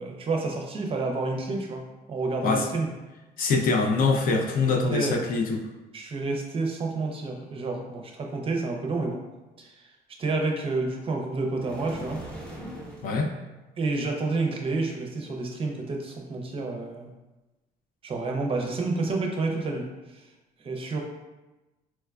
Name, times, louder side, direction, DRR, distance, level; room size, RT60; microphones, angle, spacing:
voice 1, 0.0-2.9 4.9-5.2 5.9-9.2 9.6-9.9 10.2-12.2 13.8-17.1 18.0-20.2 20.6-21.0, right 3 dB, 35° right, 2 dB, 0.5 m, -29 dB
voice 2, 3.4-5.6 13.0-13.3, left 4 dB, 60° left, 4 dB, 0.5 m, -24 dB
sound 1, 11.6-13.1, equal, 5° left, 0.8 m, -39 dB
4.3 x 2.2 x 2.3 m, 1.1 s
cardioid pair, 110°, 17 cm